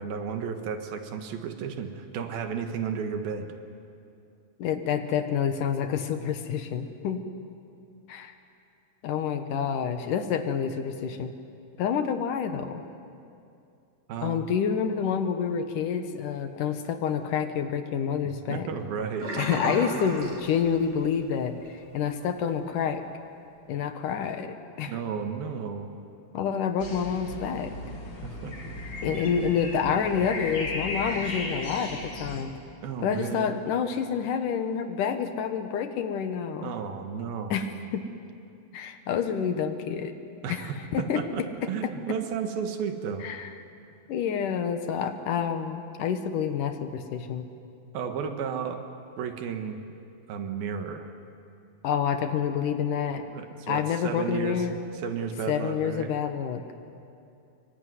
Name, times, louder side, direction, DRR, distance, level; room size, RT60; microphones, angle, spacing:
voice 1, 0.0-3.5 14.1-14.4 18.5-19.3 19.7-19.9 24.9-25.9 28.2-28.8 29.1-29.4 32.8-33.6 36.6-37.6 40.4-41.4 41.7-43.3 47.9-48.8 49.2-49.8 50.3-51.1 53.3-54.7 55.0-56.1, right 6 dB, 90° right, 6 dB, 3.5 m, -33 dB
voice 2, 4.6-7.2 8.1-8.4 9.0-11.3 11.8-12.8 14.2-18.7 19.4-23.0 23.7-25.0 26.3-27.8 29.0-32.5 33.0-36.7 37.5-38.0 38.7-40.1 40.5-41.2 41.6-41.9 43.2-43.5 44.1-47.5 51.8-53.3 53.7-54.8 55.5-56.6, left 7 dB, 70° left, 8 dB, 2.7 m, -28 dB
Sink (filling or washing), 19.2-21.2 21.5-21.8 22.2-22.3, right 1 dB, 75° right, 7.5 m, -34 dB
sound 1, 26.8-32.4, left 2 dB, 35° left, 3.1 m, -36 dB
25.5 x 23.0 x 9.6 m, 2.5 s
omnidirectional pair, 4.1 m